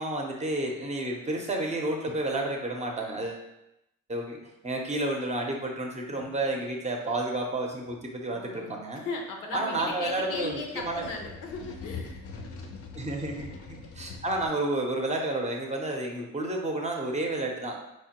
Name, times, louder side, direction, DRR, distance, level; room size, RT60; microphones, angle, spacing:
voice 1, 0.0-3.4 4.1-9.1 9.5-11.1 12.9-17.8, right 2 dB, 25° right, 1 dB, 0.6 m, -31 dB
voice 2, 6.1-6.6 8.3-12.2, left 3 dB, 90° left, 2 dB, 0.7 m, -37 dB
sound 1, 6.9-7.1 7.8-8.0 10.2-14.5, left 4 dB, 50° left, 0.5 m, -43 dB
4.5 x 2.1 x 2.9 m, 0.87 s
cardioid pair, 90°, 30 cm